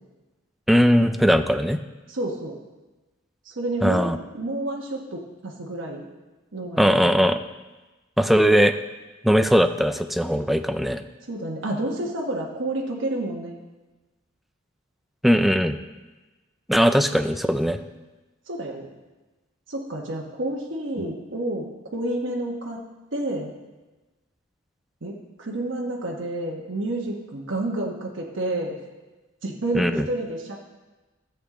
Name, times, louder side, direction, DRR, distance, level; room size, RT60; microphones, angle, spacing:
voice 1, 0.7-1.8 3.8-4.2 6.8-7.4 8.2-8.8 9.2-11.0 15.2-15.8 16.7-17.8 29.7-30.1, equal, ahead, 9 dB, 0.4 m, -19 dB
voice 2, 2.1-2.6 3.4-4.1 4.3-6.1 6.5-7.3 11.3-13.6 18.5-18.9 19.7-22.8 23.1-23.5 25.0-28.8 29.4-30.6, right 1 dB, 70° right, -1 dB, 1.2 m, -29 dB
13.0 x 8.1 x 3.7 m, 1.2 s
head